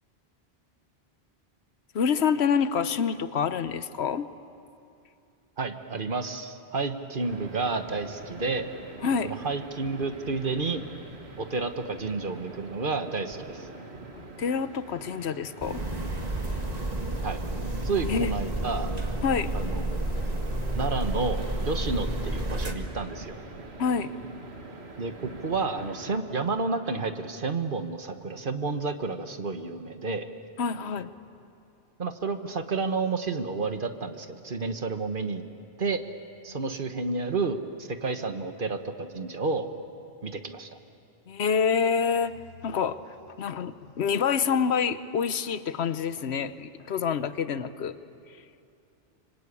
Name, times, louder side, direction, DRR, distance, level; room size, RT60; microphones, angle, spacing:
voice 1, 1.9-4.3 9.0-9.3 14.1-15.8 18.1-18.3 19.2-19.5 23.8-24.1 30.6-31.1 41.3-42.3 42.6-43.0 43.4-48.0, left 6 dB, 80° left, 13 dB, 1.1 m, -27 dB
voice 2, 5.6-8.7 9.2-10.8 11.4-13.7 17.2-17.4 17.8-18.9 19.5-20.0 20.7-23.4 25.0-30.3 32.0-35.4 35.8-36.0 36.4-39.7 40.2-40.7, right 4 dB, 55° right, 8 dB, 1.4 m, -30 dB
sound 1, 7.2-26.2, right 3 dB, 75° right, 2.0 m, -45 dB
sound 2, 15.6-22.7, right 1 dB, 40° right, 2.0 m, -30 dB
25.5 x 25.5 x 8.5 m, 2.6 s
omnidirectional pair, 1.1 m